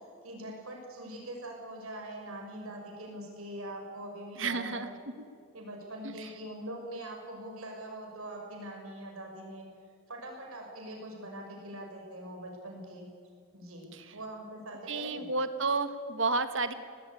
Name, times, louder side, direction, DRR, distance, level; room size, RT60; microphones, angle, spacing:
voice 1, 0.2-4.9 5.5-9.6 10.1-13.1 13.5-15.3, right 1 dB, 90° right, 1 dB, 5.8 m, -43 dB
voice 2, 4.4-4.9 6.0-6.1 13.9-14.0 14.9-16.7, right 3 dB, 65° right, 11 dB, 1.4 m, -31 dB
19.0 x 17.0 x 9.7 m, 2.2 s
head